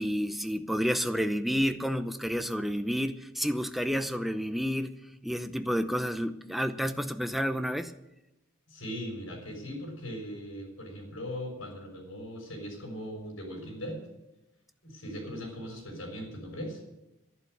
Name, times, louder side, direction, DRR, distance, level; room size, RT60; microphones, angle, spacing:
voice 1, 0.0-4.9 5.2-7.9, equal, ahead, 8 dB, 0.7 m, -30 dB
voice 2, 8.7-14.0 14.8-16.8, equal, 75° left, 1 dB, 6.4 m, -39 dB
11.5 x 11.5 x 8.1 m, 0.93 s
head